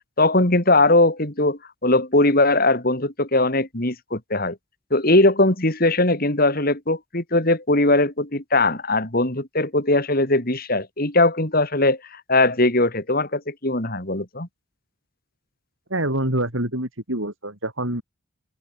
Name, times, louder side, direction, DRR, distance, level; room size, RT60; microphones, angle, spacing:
voice 1, 0.2-4.6 4.9-14.5, left 2 dB, 45° left, 3.4 m, -20 dB
voice 2, 15.9-18.0, right 1 dB, 70° right, 8.0 m, -26 dB
open air
head